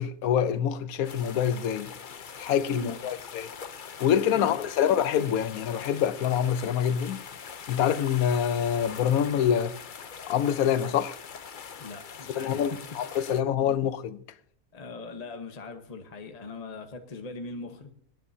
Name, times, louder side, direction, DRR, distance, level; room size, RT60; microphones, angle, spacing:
voice 1, 0.0-1.9 2.4-3.5 4.0-7.2 7.7-9.8 10.2-11.2 12.3-14.2, left 9 dB, 80° left, 1.2 m, -26 dB
sound 1, 1.0-13.4, left 6 dB, 45° left, 0.7 m, -43 dB
voice 2, 11.8-12.6 13.7-13.8 14.7-17.9, left 3 dB, 30° left, 1.2 m, -40 dB
28.0 x 9.7 x 2.7 m
omnidirectional pair, 1.5 m